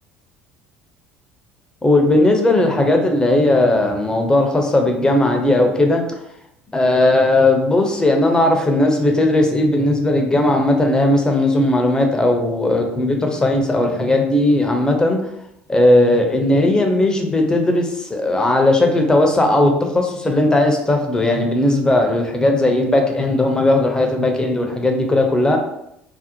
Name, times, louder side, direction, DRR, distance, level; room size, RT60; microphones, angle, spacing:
voice 1, 1.8-6.0 6.7-15.2 15.7-25.6, left 1 dB, 15° left, 3 dB, 0.5 m, -17 dB
2.6 x 2.0 x 2.8 m, 0.78 s
figure-of-eight pair, 60°, 5 cm